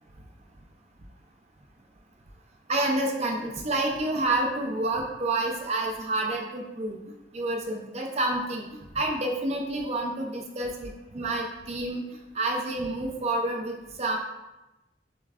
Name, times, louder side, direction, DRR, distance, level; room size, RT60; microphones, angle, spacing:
voice 1, 2.7-7.0 7.3-8.6 8.9-12.1 12.3-14.2, right 2 dB, 40° right, 2 dB, 0.5 m, -28 dB
6.7 x 3.1 x 2.5 m, 1.0 s
head